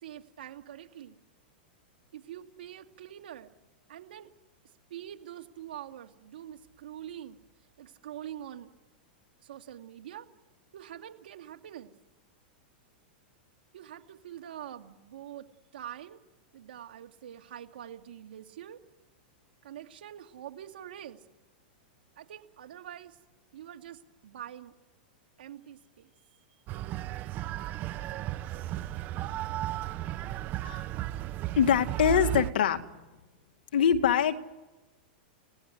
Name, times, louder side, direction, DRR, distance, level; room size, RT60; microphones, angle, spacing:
voice 1, 0.0-1.2 2.1-3.5 3.9-4.3 4.9-7.4 7.8-8.7 9.4-10.3 10.7-11.9 13.7-16.2 16.5-18.8 19.6-21.2 22.2-23.2 23.5-24.7 25.4-26.1, right 11 dB, 80° right, 5 dB, 2.3 m, -45 dB
sound 1, 26.7-32.5, right 15 dB, 35° right, 0.8 m, -34 dB
voice 2, 31.6-32.8 33.7-34.4, left 8 dB, 80° left, 6 dB, 2.1 m, -24 dB
30.0 x 17.5 x 9.9 m, 1.2 s
supercardioid pair, 140°, 5 cm